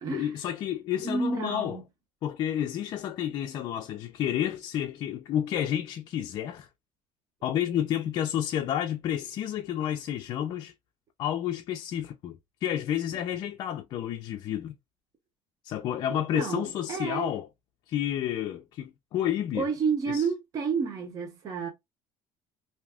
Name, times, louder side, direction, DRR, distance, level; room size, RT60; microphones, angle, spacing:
voice 1, 0.1-1.8 2.2-6.7 7.4-10.7 11.2-14.7 15.6-17.5 17.9-19.6 20.1-20.3, left 10 dB, 45° left, 0.4 m, -30 dB
voice 2, 1.0-1.8 16.1-17.3 19.5-21.7, right 5 dB, 40° right, 0.9 m, -30 dB
2.7 x 2.3 x 3.3 m
cardioid pair, 140°, 10 cm